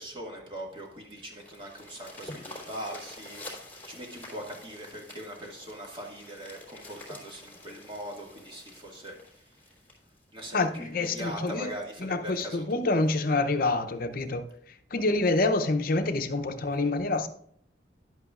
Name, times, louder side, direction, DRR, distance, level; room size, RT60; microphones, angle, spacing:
voice 1, 0.0-9.4 10.3-13.0 16.6-16.9, right 1 dB, 30° right, 2.0 m, -41 dB
sound 1, 0.6-11.0 11.6-11.7 12.2-12.3 12.6-12.7 13.1-13.3 14.2-14.3, left 1 dB, 10° left, 2.9 m, -48 dB
voice 2, 10.5-14.4 14.9-17.3, left 2 dB, 55° left, 0.7 m, -27 dB
11.0 x 8.2 x 2.5 m
head